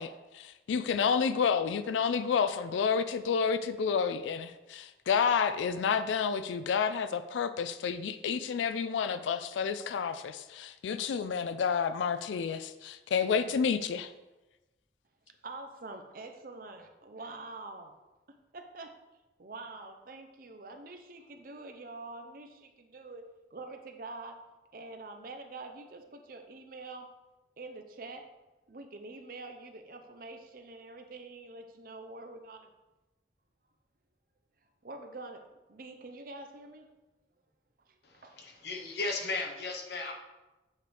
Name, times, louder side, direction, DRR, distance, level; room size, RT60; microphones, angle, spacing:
voice 1, 0.0-14.1, left 6 dB, 85° left, 11 dB, 0.3 m, -30 dB
voice 2, 15.4-17.9 18.3-19.0 19.4-24.4 24.7-27.1 27.6-28.3 28.7-32.7 34.8-36.9 37.9-38.5, right 3 dB, 50° right, 6 dB, 0.6 m, -46 dB
voice 3, 38.0-40.1, left 3 dB, 65° left, 1 dB, 1.1 m, -36 dB
8.3 x 4.7 x 3.4 m, 1.1 s
head